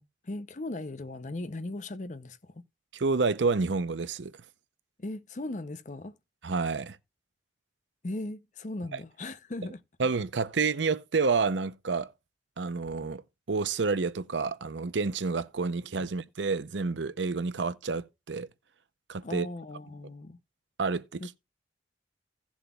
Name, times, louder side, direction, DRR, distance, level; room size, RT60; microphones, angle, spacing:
voice 1, 0.0-2.7 5.0-6.2 8.0-9.8 16.0-16.1 19.2-20.4 21.2-21.4, left 2 dB, 40° left, 0.6 m, -38 dB
voice 2, 2.9-4.3 6.4-7.0 10.0-12.1 12.6-13.2 13.5-18.5 19.1-19.5 20.8-21.2, right 4 dB, 85° right, 0.7 m, -29 dB
17.0 x 7.2 x 2.3 m
head